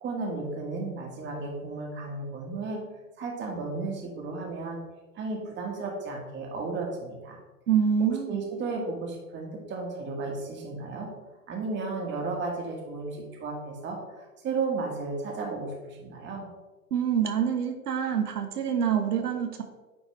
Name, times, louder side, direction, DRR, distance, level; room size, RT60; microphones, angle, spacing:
voice 1, 0.0-2.8 3.2-4.8 5.1-7.4 8.3-11.1 11.5-16.5, right 3 dB, 25° right, -1 dB, 1.6 m, -34 dB
voice 2, 7.7-8.4 16.9-19.6, right 8 dB, 80° right, 5 dB, 0.9 m, -26 dB
9.2 x 3.5 x 3.2 m, 1.2 s
hypercardioid pair, 110°, 46 cm